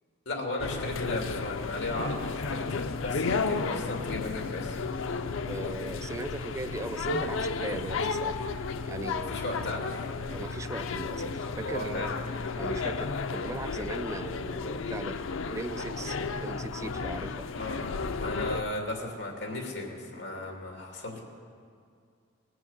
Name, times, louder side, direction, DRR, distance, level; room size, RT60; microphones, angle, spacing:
voice 1, 0.3-4.8 9.3-10.1 11.6-12.2 17.5-17.9 18.2-21.2, left 2 dB, 60° left, 1 dB, 2.6 m, -35 dB
sound 1, 0.6-18.6, left 4 dB, 85° left, 0.5 m, -33 dB
voice 2, 5.5-8.5 8.9-9.4 10.3-12.3 12.6-15.2 15.5-17.5, right 2 dB, 15° right, 10 dB, 0.3 m, -39 dB
19.5 x 7.8 x 7.3 m, 2.3 s
head